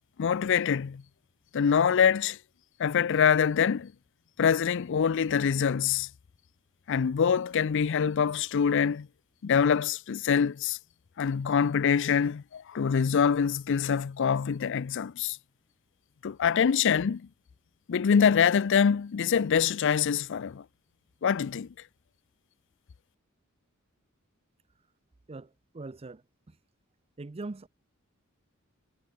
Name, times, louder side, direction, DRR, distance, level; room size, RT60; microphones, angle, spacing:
voice 1, 0.2-1.0 1.5-2.4 2.8-3.9 4.4-6.1 6.9-9.1 9.4-10.8 11.2-15.4 16.2-17.3 17.9-20.6 21.2-21.7, left 7 dB, 60° left, 0.4 m, -25 dB
voice 2, 25.3-26.2 26.5-26.6 27.2-27.7, right 3 dB, 30° right, 0.6 m, -41 dB
head